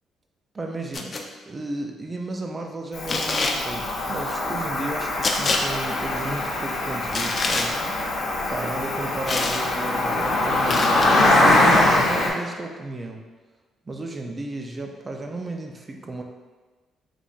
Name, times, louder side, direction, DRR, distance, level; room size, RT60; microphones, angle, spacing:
voice 1, 0.5-7.8 8.5-11.1 11.4-13.2 13.9-16.2, right 2 dB, 30° right, 3 dB, 0.4 m, -33 dB
sound 1, 0.9-1.2 3.1-3.6 5.2-5.6 7.1-7.7 9.3-9.6 10.7-11.1, left 3 dB, 40° left, 0.4 m, -25 dB
Cricket, 2.9-12.3, left 2 dB, 75° left, 0.8 m, -23 dB
3.9 x 3.1 x 2.3 m, 1.3 s
cardioid pair, 90°, 0 cm